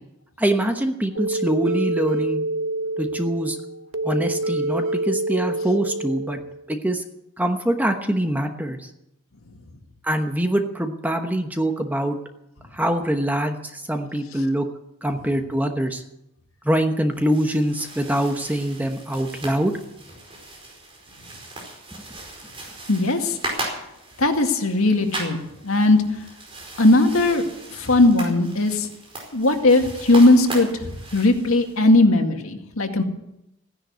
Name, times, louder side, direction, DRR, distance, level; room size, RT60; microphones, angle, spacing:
voice 1, 0.4-2.5 3.0-3.6 4.0-6.4 6.7-7.0 7.4-8.8 10.0-12.2 12.7-14.7 15.0-16.0 16.6-19.7, right 1 dB, 10° right, 5 dB, 1.1 m, -24 dB
sound 1, 1.2-6.7, right 2 dB, 70° right, 0.8 m, -27 dB
sound 2, 17.1-31.9, right 2 dB, 25° right, 4.8 m, -37 dB
voice 2, 22.9-23.4 24.2-26.0 26.8-27.4 27.7-28.9 29.3-30.7 31.1-33.0, left 2 dB, 85° left, 4 dB, 2.1 m, -18 dB
15.5 x 10.5 x 8.1 m, 0.84 s
head